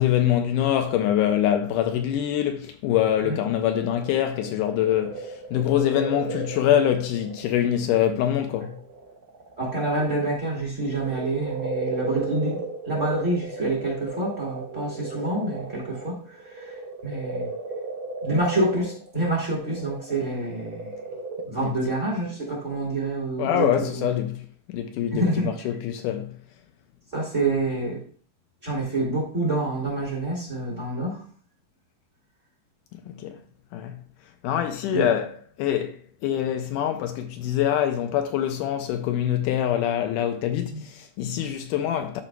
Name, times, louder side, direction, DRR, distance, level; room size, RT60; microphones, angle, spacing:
voice 1, 0.0-8.8 21.6-21.8 23.4-24.4 24.7-26.3 33.1-33.4 33.7-34.0 34.4-35.3 35.6-36.0 36.2-42.2, left 10 dB, 80° left, 2.0 m, -24 dB
sound 1, 3.3-8.1 8.6-10.3 10.7-21.4, right 3 dB, 55° right, 1.1 m, -35 dB
voice 2, 9.6-12.6 12.8-16.7 17.0-17.5 18.2-20.9 21.5-24.0 25.1-25.5 27.1-28.0 28.6-31.2 34.9-35.1 40.7-40.8, right 2 dB, 25° right, 2.1 m, -27 dB
12.5 x 4.9 x 2.2 m
omnidirectional pair, 3.9 m